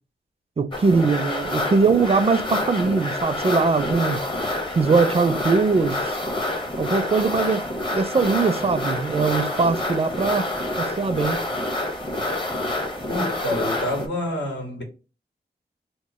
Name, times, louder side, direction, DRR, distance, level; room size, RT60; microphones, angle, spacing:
voice 1, 0.6-4.2 4.8-6.0 6.8-10.5 10.8-11.4, right 4 dB, 35° right, 0.4 m, -21 dB
sound 1, 0.7-14.1, left 1 dB, 30° left, 0.7 m, -27 dB
voice 2, 13.1-14.8, left 1 dB, 85° left, 1.8 m, -27 dB
3.0 x 2.1 x 4.1 m
wide cardioid pair, 110°, 18 cm